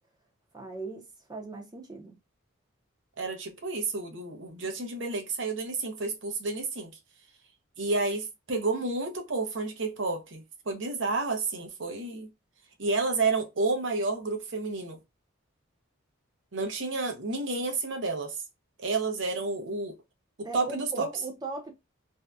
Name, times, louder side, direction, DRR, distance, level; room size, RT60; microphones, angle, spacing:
voice 1, 0.5-2.1 20.4-21.7, right 3 dB, 20° right, 0.6 m, -38 dB
voice 2, 3.2-6.9 7.8-12.3 12.8-15.0 16.5-18.4 18.8-19.9 20.5-21.1, right 3 dB, 65° right, 0.7 m, -30 dB
2.6 x 2.2 x 2.3 m
head